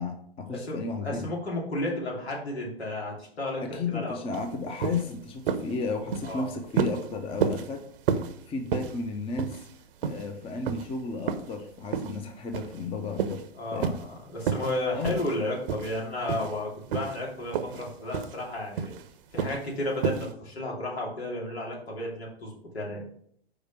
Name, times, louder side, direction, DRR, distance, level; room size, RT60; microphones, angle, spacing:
voice 1, 0.0-1.3 3.6-7.8 8.5-9.6 10.0-13.4 13.7-13.9 14.9-15.1, left 3 dB, 20° left, 5 dB, 0.8 m, -33 dB
voice 2, 0.5-4.1 6.2-6.5 13.6-18.9 19.3-23.0, left 1 dB, 85° left, -3 dB, 3.1 m, -33 dB
sound 1, 4.3-4.5 4.8-5.1 5.5-5.7 6.1-6.4 6.8-7.0 7.4-7.7 8.1-8.3 8.7-9.0 9.4-9.7 10.0-10.3 10.7-10.8 11.3-11.5 11.9-12.2 12.5-12.8 13.2-13.4 13.8-14.1 14.4-14.8 15.0-15.4 15.7-16.0 16.3-16.6 16.9-17.2 17.5-17.9 18.1-18.4 18.8-19.0 19.4-19.6 20.0-20.3, right 7 dB, 60° right, 0.8 m, -30 dB
5.0 x 5.0 x 6.1 m, 0.65 s
hypercardioid pair, 120°, 31 cm